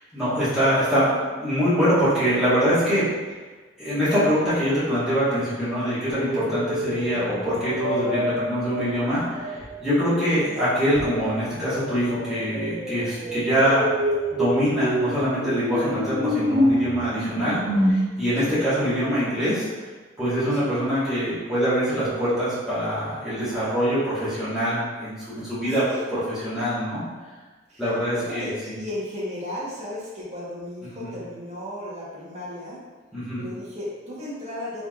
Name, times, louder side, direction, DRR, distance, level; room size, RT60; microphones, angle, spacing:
voice 1, 0.1-3.1 3.8-13.8 14.3-17.6 17.9-19.7 20.2-25.8 26.4-27.0 27.8-28.5 31.0-31.1 33.1-33.4, equal, ahead, -14 dB, 1.3 m, -24 dB
sound 1, 6.1-9.8 10.9-17.9, equal, 85° right, 1.1 m, -27 dB
voice 2, 25.7-26.0 27.7-32.8 33.4-34.9, left 1 dB, 35° right, -7 dB, 1.0 m, -35 dB
3.9 x 3.3 x 2.3 m, 1.3 s
head